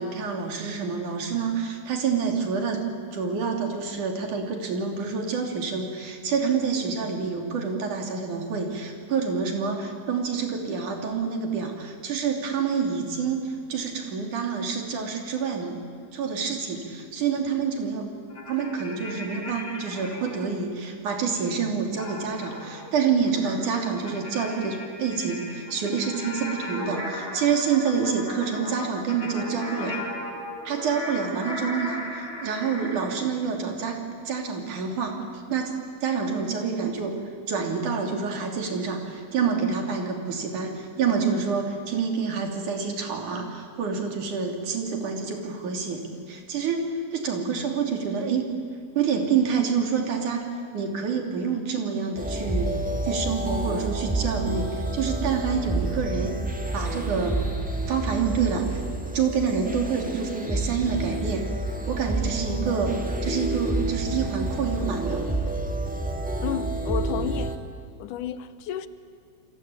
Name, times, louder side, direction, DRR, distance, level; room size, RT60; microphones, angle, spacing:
voice 1, 0.0-2.8 3.1-15.8 16.1-18.1 18.5-30.0 30.7-35.2 35.5-35.7 36.0-37.1 37.5-46.0 46.3-48.5 49.0-52.7 53.0-56.4 56.7-57.5 57.9-58.8 59.1-61.5 61.9-62.9 63.2-65.2, right 6 dB, 75° right, 3 dB, 4.5 m, -27 dB
sound 1, 18.3-20.4 22.0-33.1, left 1 dB, 35° left, 4.6 m, -37 dB
sound 2, 52.2-67.6, right 2 dB, 5° right, 1.0 m, -29 dB
voice 2, 66.4-67.5 68.0-68.9, left 11 dB, 85° left, 13 dB, 2.5 m, -31 dB
29.0 x 23.5 x 8.6 m, 2.2 s
omnidirectional pair, 3.6 m